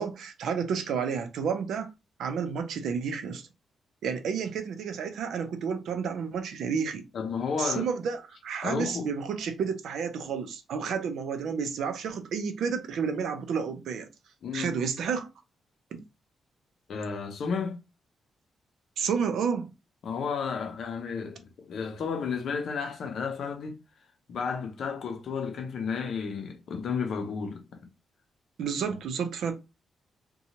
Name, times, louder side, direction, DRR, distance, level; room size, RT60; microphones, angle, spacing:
voice 1, 0.0-1.9 2.2-3.5 4.0-7.0 7.6-14.1 14.5-15.3 15.9-16.0 19.0-19.7 28.6-29.5, right 6 dB, 80° right, 0.5 m, -31 dB
voice 2, 7.1-7.9 8.6-9.1 14.4-14.7 16.9-17.8 20.0-23.8 24.3-27.8 28.9-29.0, left 5 dB, 60° left, 0.6 m, -32 dB
2.8 x 2.2 x 2.8 m
wide cardioid pair, 160°, 0 cm